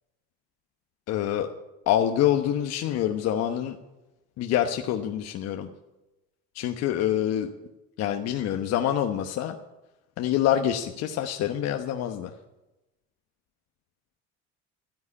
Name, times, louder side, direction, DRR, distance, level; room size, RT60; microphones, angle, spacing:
voice 1, 1.1-1.5 1.9-3.8 4.4-5.7 6.5-7.5 8.0-9.5 10.2-12.3, left 11 dB, 55° left, 5 dB, 1.1 m, -26 dB
13.0 x 9.8 x 9.8 m, 1.0 s
supercardioid pair, 115°, 30 cm